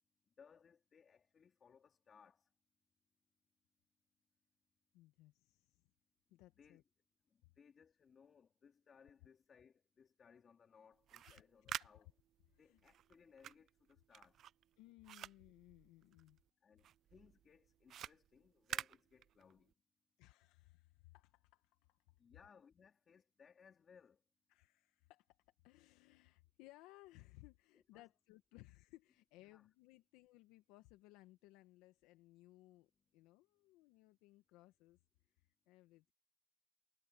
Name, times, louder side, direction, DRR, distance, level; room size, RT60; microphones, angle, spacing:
voice 1, 0.4-2.5 6.3-6.8 7.3-12.1 12.6-14.4 16.6-19.7 22.2-24.2 27.7-28.1 29.4-29.7, left 6 dB, 25° left, 3.0 m, -66 dB
voice 2, 4.9-5.8 6.3-6.8 7.4-7.5 11.2-11.9 12.5-12.8 14.8-16.4 20.2-22.0 24.5-25.4 25.6-35.0 35.3-36.1, left 18 dB, 60° left, 1.6 m, -63 dB
sound 1, 10.9-16.5 16.8-19.7, right 11 dB, 40° right, 0.3 m, -50 dB
supercardioid pair, 130°, 0 cm